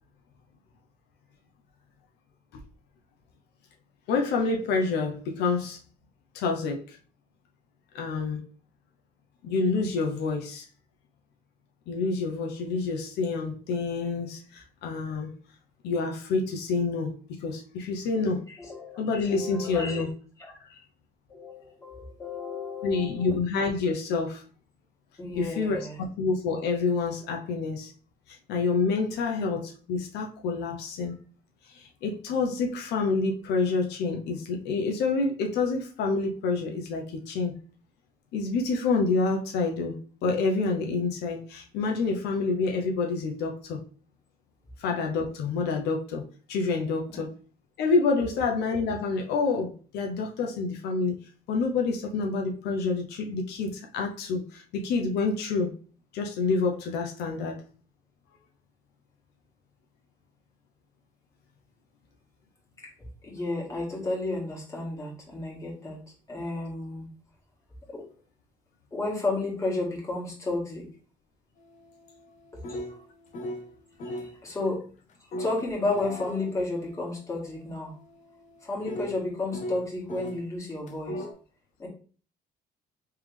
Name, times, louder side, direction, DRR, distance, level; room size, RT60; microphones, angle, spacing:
voice 1, 4.1-5.8 6.3-7.0 7.9-8.4 9.4-10.7 11.9-15.3 15.8-18.4 19.0-20.1 20.6-20.8 22.8-24.4 25.4-27.9 28.3-31.2 31.6-37.5 38.3-43.8 44.8-46.2 46.5-47.3 47.8-51.2 51.5-55.7 56.1-57.6, left 4 dB, 80° left, 2 dB, 0.7 m, -28 dB
voice 2, 18.5-19.0 19.3-20.0 21.3-23.3 25.2-26.0 47.1-47.2 63.2-66.0 66.3-67.1 67.9-68.0 68.9-70.9 72.7-73.0 74.0-74.8 75.2-77.9 78.6-81.3 81.8-81.9, left 2 dB, 20° left, -4 dB, 1.9 m, -32 dB
sound 1, 71.6-73.7 74.0-74.3 75.3-80.4 80.9-81.3, left 1 dB, 45° left, 0.9 m, -39 dB
3.4 x 3.3 x 3.3 m, 0.39 s
cardioid pair, 110°, 17 cm